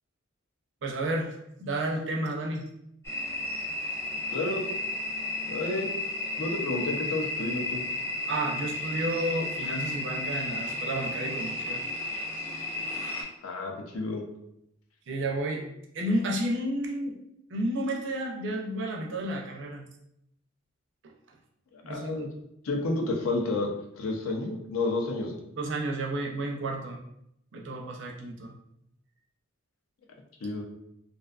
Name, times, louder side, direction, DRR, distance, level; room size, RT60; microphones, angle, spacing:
voice 1, 0.8-1.3 1.6-2.7 8.3-11.8 15.1-15.6 15.9-17.2 17.5-19.8 21.8-22.3 25.5-27.0 27.5-28.5, right 1 dB, 55° right, 0 dB, 0.4 m, -31 dB
sound 1, 3.0-13.2, left 2 dB, 10° left, 0.3 m, -33 dB
voice 2, 4.3-4.6 5.4-5.9 6.4-7.8 13.4-14.2 21.9-22.3 22.6-23.7 24.0-25.4 30.4-30.6, left 2 dB, 80° left, 1 dB, 0.5 m, -30 dB
2.5 x 2.3 x 2.3 m, 0.78 s
head